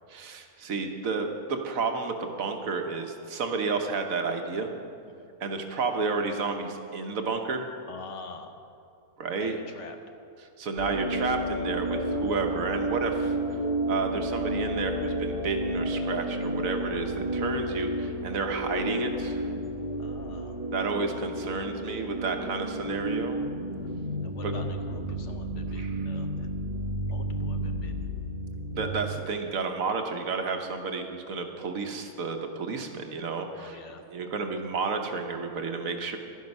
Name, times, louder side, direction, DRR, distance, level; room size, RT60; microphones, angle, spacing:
voice 1, 0.1-4.7 5.4-7.7 9.2-9.6 10.6-13.3 13.9-19.5 20.7-23.4 24.4-24.5 25.8-26.0 28.7-33.8 34.1-36.2, right 4 dB, 70° right, 5 dB, 1.3 m, -31 dB
voice 2, 7.9-8.6 9.4-10.0 20.0-20.6 24.2-26.6 27.1-28.1 33.6-34.0, left 4 dB, 60° left, 6 dB, 1.0 m, -45 dB
sound 1, 10.8-28.9, right 1 dB, 30° right, 1.0 m, -31 dB
12.0 x 10.5 x 5.3 m, 2.5 s
omnidirectional pair, 1.5 m